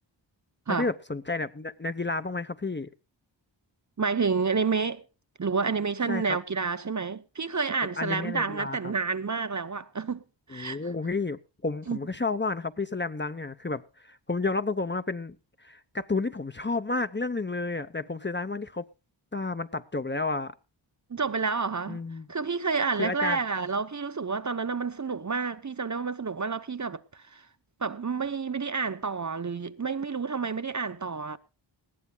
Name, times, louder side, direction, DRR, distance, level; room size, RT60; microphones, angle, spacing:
voice 1, 0.7-2.9 6.1-6.4 8.0-8.9 10.5-15.4 15.6-18.9 19.3-20.5 21.9-22.3 23.0-23.4, left 3 dB, 25° left, 0.7 m, -31 dB
voice 2, 4.0-5.0 5.4-10.2 10.5-10.8 11.9-12.0 21.1-22.0 22.3-27.4 27.8-31.4, right 5 dB, 40° right, 0.8 m, -29 dB
20.0 x 14.5 x 2.3 m
wide cardioid pair, 60°, 47 cm